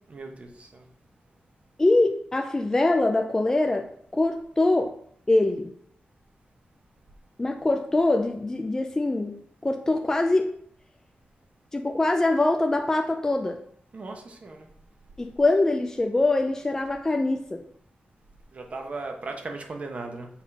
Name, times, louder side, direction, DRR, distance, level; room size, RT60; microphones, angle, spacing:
voice 1, 0.1-0.9 13.9-14.7 18.5-20.3, right 3 dB, 40° right, 4 dB, 1.1 m, -37 dB
voice 2, 1.8-4.9 5.3-5.7 7.4-10.5 11.7-13.6 15.2-17.6, left 2 dB, 15° left, 4 dB, 0.4 m, -23 dB
7.2 x 3.8 x 5.5 m, 0.67 s
wide cardioid pair, 180°, 3 cm